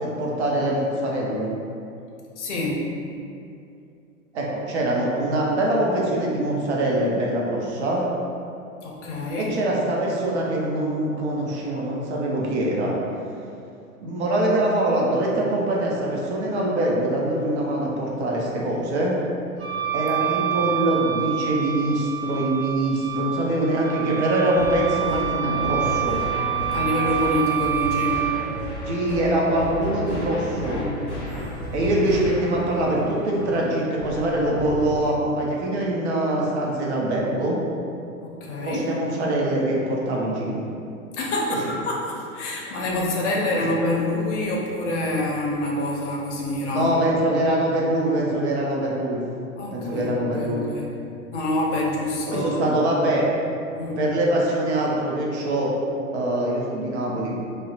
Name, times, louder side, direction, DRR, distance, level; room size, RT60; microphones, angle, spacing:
voice 1, 0.0-1.5 4.3-8.0 9.4-13.0 14.0-19.2 19.9-26.2 28.8-30.8 31.7-37.6 38.6-40.6 43.5-43.6 46.7-49.2 49.7-50.6 52.3-53.3 54.0-55.7 56.1-57.4, right 1 dB, 55° right, -3 dB, 0.6 m, -23 dB
voice 2, 2.4-2.8 8.8-9.5 20.2-20.4 26.7-28.3 30.6-30.9 38.2-38.9 41.1-46.9 49.6-50.9 51.3-52.8 53.7-54.0, left 1 dB, 55° left, -2 dB, 0.6 m, -26 dB
Wind instrument woodwind instrument, 19.6-28.4, right 12 dB, 85° right, 0.8 m, -27 dB
sound 1, 24.6-32.6, left 1 dB, 30° left, 1.0 m, -34 dB
sound 2, 24.8-35.1, equal, ahead, 1.0 m, -36 dB
2.6 x 2.0 x 2.4 m, 2.6 s
figure-of-eight pair, 105°, 43 cm